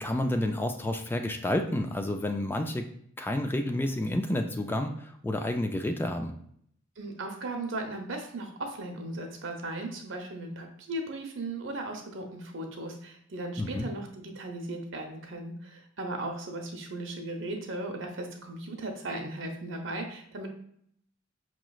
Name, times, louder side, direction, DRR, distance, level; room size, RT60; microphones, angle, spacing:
voice 1, 0.0-2.9 3.2-6.3 13.6-13.9, left 1 dB, 10° left, 5 dB, 0.3 m, -30 dB
voice 2, 7.0-20.5, right 2 dB, 90° right, 3 dB, 0.7 m, -37 dB
4.9 x 3.1 x 2.3 m, 0.67 s
head